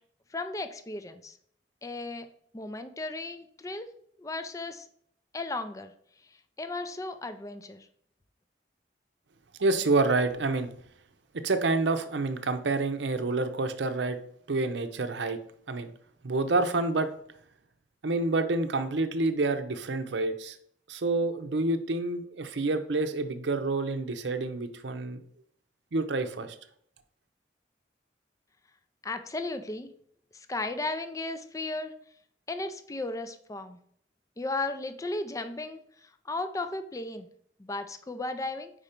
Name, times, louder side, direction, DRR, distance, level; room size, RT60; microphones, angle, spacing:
voice 1, 0.3-1.4 1.8-2.3 2.5-3.9 4.2-4.9 5.3-5.9 6.6-7.9 29.0-29.9 30.3-31.9 32.5-33.8 34.4-37.3 37.6-38.7, left 2 dB, 20° left, 9 dB, 0.4 m, -35 dB
voice 2, 9.6-10.7 11.3-14.2 14.5-15.4 15.7-15.9 16.2-17.1 18.0-20.6 20.9-25.2 25.9-26.5, right 3 dB, 80° right, 9 dB, 0.6 m, -28 dB
5.0 x 4.3 x 5.0 m, 0.65 s
head